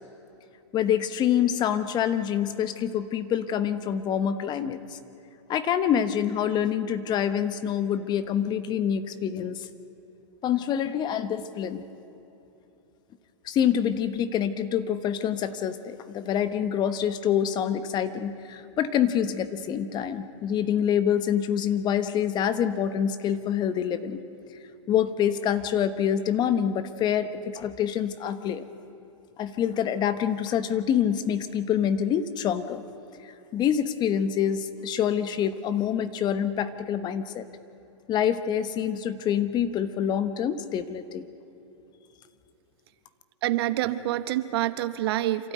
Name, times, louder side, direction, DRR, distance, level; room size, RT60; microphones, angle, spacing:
voice 1, 0.7-5.0 5.5-9.7 10.4-11.8 13.4-24.2 24.9-28.7 29.4-32.8 33.2-37.5 38.1-41.2, left 9 dB, 30° left, 12 dB, 1.1 m, -26 dB
voice 2, 43.4-45.5, right 14 dB, 55° right, 12 dB, 1.0 m, -27 dB
27.0 x 13.0 x 9.4 m, 3.0 s
hypercardioid pair, 120°, 15 cm